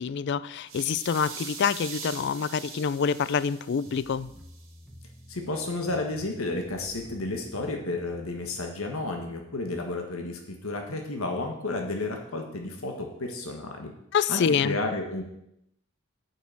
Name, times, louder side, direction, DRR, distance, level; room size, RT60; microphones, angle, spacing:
voice 1, 0.0-4.3 14.1-14.8, left 6 dB, 55° left, 17 dB, 0.4 m, -26 dB
sound 1, 0.7-4.7, right 5 dB, 70° right, 2.4 m, -42 dB
sound 2, 3.9-9.2, equal, ahead, 1.3 m, -50 dB
voice 2, 5.3-13.9 14.3-15.2, left 2 dB, 85° left, 3 dB, 1.5 m, -32 dB
9.4 x 6.4 x 7.5 m, 0.79 s
head